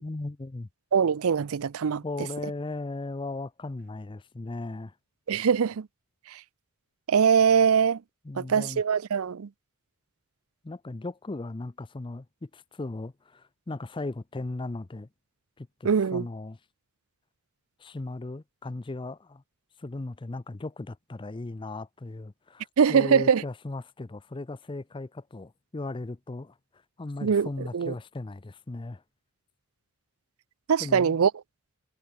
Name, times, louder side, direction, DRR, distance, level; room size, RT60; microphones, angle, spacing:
voice 1, 0.0-0.7 2.0-4.9 8.2-8.8 10.6-15.1 15.6-16.6 17.8-19.4 19.8-26.5 27.0-29.0 30.8-31.2, left 2 dB, 20° left, 0.5 m, -37 dB
voice 2, 0.9-2.0 5.3-5.9 6.3-6.4 7.1-8.0 8.4-9.5 15.8-16.3 22.8-23.4 27.2-27.9 30.7-31.3, right 6 dB, 70° right, 0.5 m, -22 dB
head